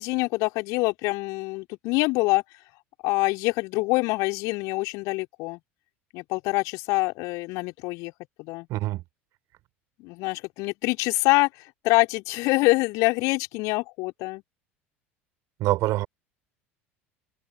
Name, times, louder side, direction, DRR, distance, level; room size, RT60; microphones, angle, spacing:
voice 1, 0.0-2.4 3.0-5.6 6.1-8.1 8.4-8.7 10.0-11.5 11.8-14.4, left 24 dB, 50° left, 3.7 m, -25 dB
voice 2, 8.7-9.0 15.6-16.1, right 17 dB, 45° right, 3.4 m, -25 dB
figure-of-eight pair, 70°, 7 cm